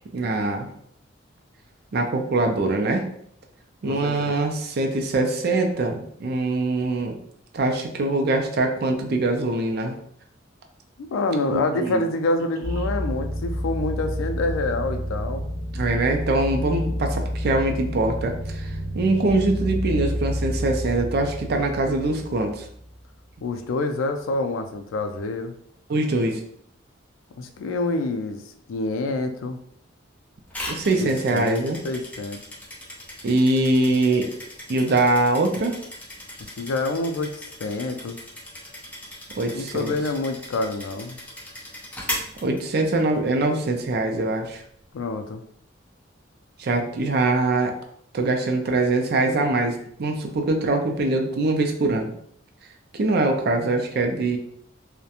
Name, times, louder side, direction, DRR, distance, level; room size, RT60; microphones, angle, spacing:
voice 1, 0.1-0.7 1.9-3.0 3.8-7.2 7.5-9.9 11.5-12.0 15.7-22.7 25.9-26.4 30.7-31.8 33.2-34.3 34.7-35.8 39.4-39.9 42.4-44.6 46.6-47.7 48.1-52.1 52.9-54.4, right 2 dB, 55° right, 3 dB, 0.4 m, -23 dB
voice 2, 3.9-4.4 11.0-15.5 23.4-25.5 27.4-28.4 28.7-29.6 31.0-32.4 36.4-37.3 37.6-38.2 39.5-41.2 44.9-45.4, left 2 dB, 85° left, 6 dB, 0.3 m, -27 dB
sound 1, 12.6-23.0, equal, 35° left, 0.9 m, -29 dB
sound 2, 30.5-43.2, left 1 dB, 10° left, 0.5 m, -38 dB
2.4 x 2.1 x 2.8 m, 0.67 s
head